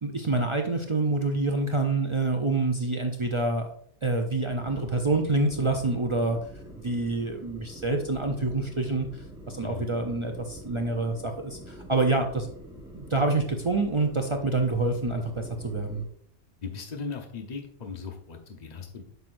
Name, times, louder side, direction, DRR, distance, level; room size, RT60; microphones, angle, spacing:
voice 1, 0.0-3.7 4.0-6.4 6.8-12.5 12.9-16.0, right 2 dB, 35° right, 3 dB, 0.5 m, -27 dB
sound 1, 4.4-16.1, right 1 dB, 5° right, 1.2 m, -45 dB
voice 2, 9.6-9.9 16.6-19.0, left 4 dB, 40° left, 3 dB, 1.0 m, -38 dB
8.0 x 6.0 x 2.6 m, 0.63 s
omnidirectional pair, 1.2 m